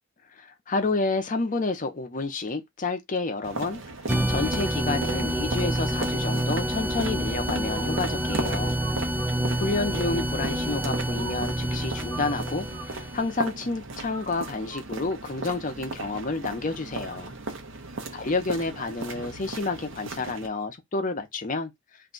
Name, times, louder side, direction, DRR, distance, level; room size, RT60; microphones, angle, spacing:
voice 1, 0.4-3.8 4.3-8.8 9.6-17.3 18.1-21.7, left 3 dB, 45° left, 0.7 m, -29 dB
sound 1, 3.4-20.5, right 3 dB, 80° right, 0.8 m, -37 dB
sound 2, 4.1-13.5, right 1 dB, 10° right, 0.3 m, -28 dB
2.7 x 2.2 x 3.8 m
head